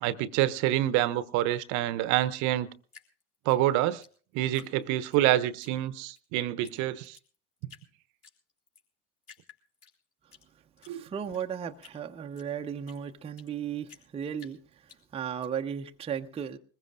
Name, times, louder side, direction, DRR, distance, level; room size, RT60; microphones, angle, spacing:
voice 1, 0.0-2.7 3.5-4.0 4.3-7.2 10.9-11.0, right 14 dB, 45° right, 0.8 m, -27 dB
Drip, 2.9-5.2 5.6-6.2 6.6-6.8 7.0-7.9 8.2-8.8 9.2-10.4 10.8-13.5 13.9-15.5, left 6 dB, 35° left, 3.7 m, -54 dB
voice 2, 10.2-16.6, right 8 dB, 15° right, 0.6 m, -36 dB
22.0 x 20.5 x 2.5 m
figure-of-eight pair, 75°, 40 cm